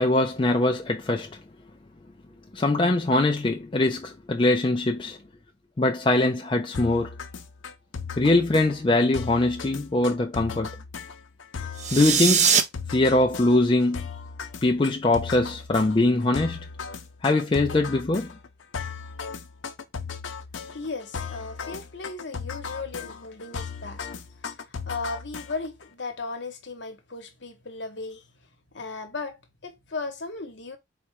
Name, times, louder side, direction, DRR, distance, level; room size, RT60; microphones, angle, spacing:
voice 1, 0.0-1.4 2.5-5.2 5.8-7.1 8.2-10.7 11.9-12.5 12.9-14.1 14.6-16.6 17.2-18.3, left 2 dB, 25° left, 0.4 m, -22 dB
sound 1, 6.7-25.8, left 5 dB, 80° left, 0.6 m, -37 dB
sound 2, 11.7-12.6, right 7 dB, 35° right, 0.5 m, -20 dB
voice 2, 20.7-24.0 24.4-28.2 28.7-29.4 29.6-30.8, left 3 dB, 65° left, 1.0 m, -36 dB
4.2 x 2.2 x 4.5 m
head